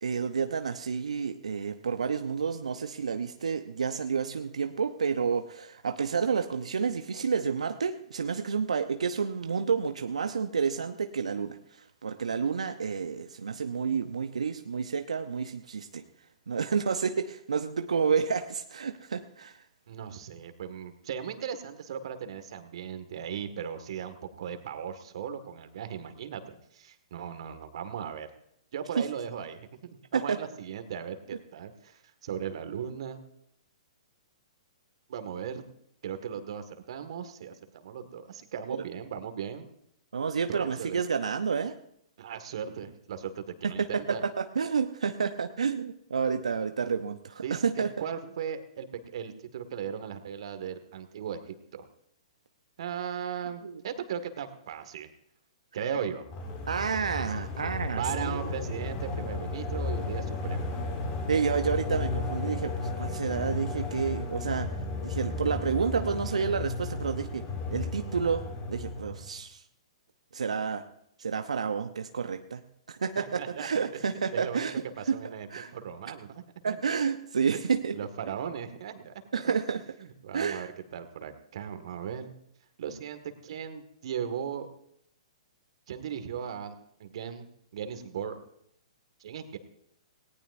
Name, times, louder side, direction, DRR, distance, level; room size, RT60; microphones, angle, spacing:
voice 1, 0.0-11.6 12.0-16.0 16.5-19.5 29.0-29.1 30.1-30.4 40.1-41.8 43.8-44.0 44.4-47.9 53.6-53.8 56.7-58.4 61.3-64.7 65.0-67.4 67.7-69.6 70.3-70.8 71.2-72.6 72.9-75.2 75.5-75.7 76.6-77.9 79.3-79.8 80.3-80.7, right 6 dB, 75° right, 7 dB, 0.8 m, -30 dB
voice 2, 19.9-28.3 28.7-33.2 35.1-35.6 36.0-39.6 40.5-41.0 42.2-44.2 47.4-47.6 48.0-51.9 52.8-55.1 55.7-56.2 58.0-60.7 73.2-74.0 74.3-74.7 75.0-76.8 77.5-77.6 77.9-79.5 80.0-82.3 82.8-84.7 85.9-86.7 87.0-87.5 87.7-88.4 89.2-89.6, right 8 dB, 60° right, 8 dB, 1.9 m, -37 dB
sound 1, 56.3-69.3, left 3 dB, 35° left, 3.5 m, -34 dB
18.5 x 18.0 x 2.7 m, 0.73 s
figure-of-eight pair, 120°, 3 cm